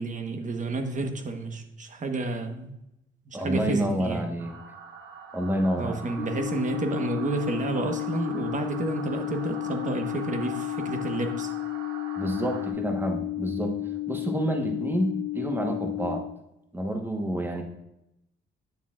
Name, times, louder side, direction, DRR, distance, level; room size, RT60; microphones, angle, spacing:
voice 1, 0.0-2.7 3.2-4.3 5.8-11.5, right 3 dB, 40° right, 6 dB, 1.1 m, -30 dB
voice 2, 3.3-4.5 5.3-6.1 12.2-13.7 14.1-16.2 16.7-17.6, right 1 dB, 10° right, 3 dB, 1.2 m, -28 dB
sound 1, 4.4-12.7, right 4 dB, 80° right, 1.1 m, -42 dB
sound 2, 6.2-16.2, left 16 dB, 20° left, 1.3 m, -32 dB
9.7 x 6.9 x 2.4 m, 0.83 s
cardioid pair, 90°, 20 cm